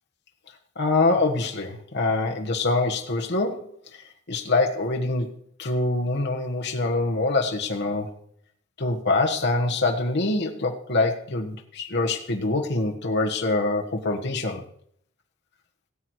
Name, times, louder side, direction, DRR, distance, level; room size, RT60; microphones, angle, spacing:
voice 1, 0.8-5.3 5.6-8.1 8.8-14.6, left 2 dB, 55° left, 2 dB, 1.4 m, -25 dB
17.5 x 8.1 x 4.7 m, 0.66 s
head